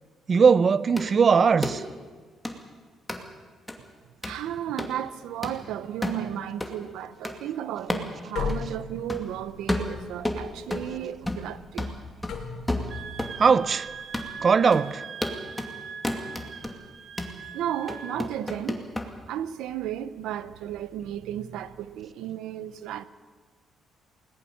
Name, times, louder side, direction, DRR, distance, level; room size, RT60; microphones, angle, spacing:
voice 1, 0.3-1.8 13.4-13.9 14.4-15.1, right 5 dB, 45° right, 0.7 m, -19 dB
sound 1, 1.0-1.1 1.6-1.8 2.4-2.6 3.1-3.2 3.7-3.8 4.2-4.4 4.8-4.9 5.4-5.6 6.0-6.2 6.6-6.7 7.2-7.4 7.9-8.1 8.5-8.6 9.1-9.3 9.7-10.9 11.3-11.5 11.8-13.4 13.7-13.8 14.1-14.3 14.7-14.9 15.2-15.7 16.0-16.7 17.2-17.4 17.9-19.1, left 1 dB, 10° left, 2.5 m, -31 dB
voice 2, 4.2-11.9 17.5-18.9 19.3-23.0, right 11 dB, 90° right, 0.9 m, -34 dB
sound 2, 8.3-14.6, left 5 dB, 75° left, 3.2 m, -38 dB
Wind instrument woodwind instrument, 12.9-18.2, right 7 dB, 60° right, 1.2 m, -41 dB
20.0 x 19.0 x 7.1 m
cardioid pair, 90°, 0 cm